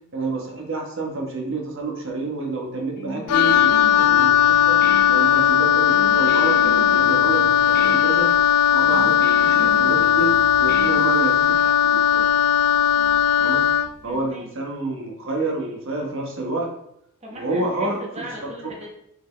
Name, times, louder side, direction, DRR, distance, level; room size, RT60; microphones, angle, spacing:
voice 1, 0.1-4.8 5.1-8.3 8.7-10.3 10.6-12.3 13.4-13.6 14.0-16.7 17.4-18.0, right 2 dB, 60° right, 0 dB, 1.3 m, -28 dB
Guitar, 3.0-11.6, left 2 dB, 45° left, 1.1 m, -35 dB
Wind instrument woodwind instrument, 3.3-13.9, left 10 dB, 80° left, 0.3 m, -18 dB
voice 2, 14.0-14.5 17.2-18.9, right 1 dB, 30° right, -1 dB, 1.2 m, -38 dB
6.3 x 4.7 x 3.3 m, 0.76 s
head